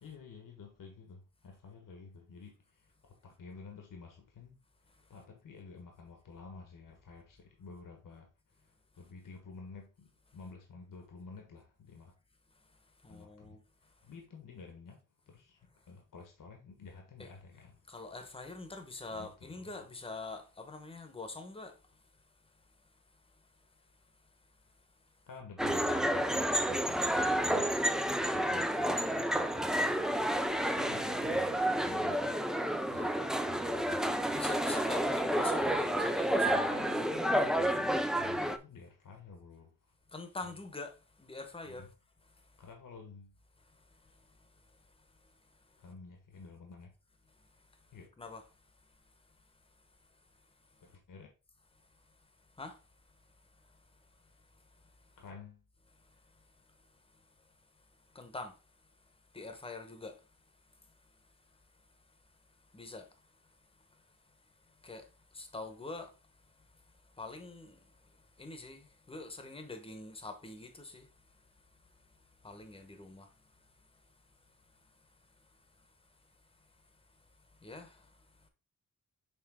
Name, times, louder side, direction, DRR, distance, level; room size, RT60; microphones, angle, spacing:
voice 1, 0.0-4.6 5.1-8.3 8.6-12.1 13.1-13.6 14.0-15.6 15.9-17.8 19.1-19.7 25.3-27.7 28.3-29.9 30.7-32.3 32.9-33.2 33.5-34.5 35.4-36.0 36.4-39.7 40.4-40.5 41.7-41.9 42.6-43.4 45.8-46.9 47.9-48.1 50.8-51.3 55.2-55.6, left 4 dB, 75° left, 1.5 m, -51 dB
voice 2, 13.0-13.6 17.2-17.3 17.9-22.0 30.5-30.6 32.8-33.3 34.1-36.7 40.1-41.9 42.5-42.6 43.7-45.8 47.6-47.7 48.2-48.4 50.7-50.8 52.5-52.8 53.6-55.1 56.0-57.2 58.1-58.6 59.3-60.3 60.8-61.2 62.7-63.2 63.9-64.4 64.6-66.7 67.0-71.5 71.9-73.5 73.9-74.0 74.8-75.9 77.5-78.5, left 3 dB, 15° left, 1.0 m, -46 dB
sound 1, 25.6-38.6, right 1 dB, ahead, 0.4 m, -30 dB
6.9 x 3.9 x 3.7 m
wide cardioid pair, 145°, 33 cm